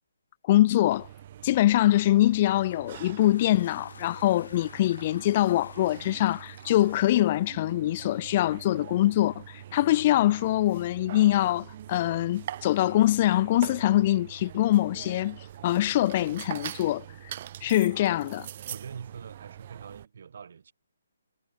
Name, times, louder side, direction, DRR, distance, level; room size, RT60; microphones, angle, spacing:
voice 1, 0.5-1.1 1.4-17.0 17.6-18.5, left 14 dB, 35° left, 0.3 m, -24 dB
sound 1, 0.9-20.1, right 11 dB, 40° right, 1.4 m, -43 dB
Toilet flush, 2.2-8.5, left 5 dB, 60° left, 6.5 m, -51 dB
voice 2, 18.7-20.7, right 6 dB, 55° right, 6.3 m, -43 dB
figure-of-eight pair, 140°, 0 cm